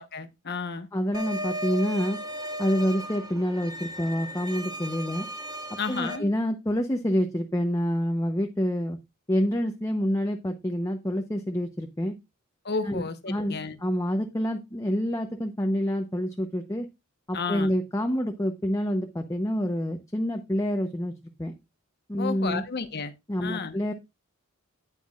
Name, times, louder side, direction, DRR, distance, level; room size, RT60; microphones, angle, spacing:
voice 1, 0.0-0.9 5.8-6.3 12.6-13.8 17.3-17.7 22.2-23.1 23.4-23.8, left 4 dB, 50° left, 1.1 m, -32 dB
voice 2, 0.9-2.2 2.6-5.3 5.9-9.0 9.3-12.2 12.8-16.9 17.3-21.1 21.4-21.5 22.1-22.6 23.3-23.9, equal, 15° left, 0.8 m, -27 dB
sound 1, 1.1-6.2, equal, 15° right, 1.1 m, -36 dB
9.3 x 9.3 x 2.4 m
head